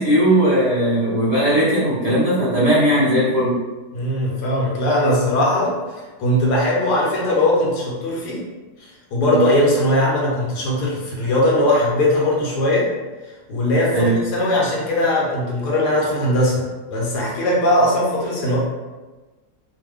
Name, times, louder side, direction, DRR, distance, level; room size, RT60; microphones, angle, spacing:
voice 1, 0.0-3.5 9.2-9.4 13.9-14.2, right 1 dB, 30° right, -11 dB, 0.7 m, -18 dB
voice 2, 3.9-8.4 8.8-12.9 13.5-18.6, left 1 dB, 75° left, -3 dB, 1.4 m, -20 dB
3.1 x 2.1 x 3.4 m, 1.2 s
omnidirectional pair, 1.7 m